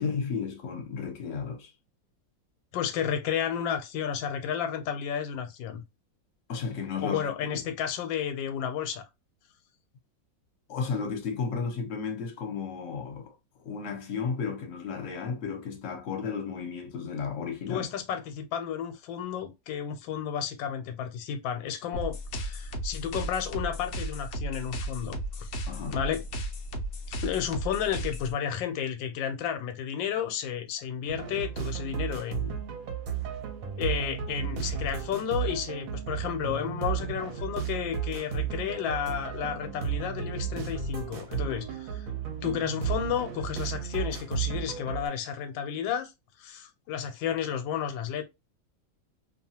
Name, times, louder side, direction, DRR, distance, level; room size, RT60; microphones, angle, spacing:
voice 1, 0.0-1.7 6.5-7.2 7.5-7.7 10.7-13.3 13.6-17.9 25.7-26.0, left 5 dB, 50° left, 1.0 m, -33 dB
voice 2, 2.7-5.8 7.0-9.0 17.7-25.5 25.9-26.2 27.2-32.6 33.8-42.1 42.4-46.1 46.4-48.2, left 8 dB, 90° left, 1.3 m, -32 dB
sound 1, 21.9-28.3, right 1 dB, 70° left, 0.6 m, -35 dB
sound 2, 31.1-45.1, right 7 dB, 65° right, 0.9 m, -34 dB
2.8 x 2.3 x 2.7 m
omnidirectional pair, 2.0 m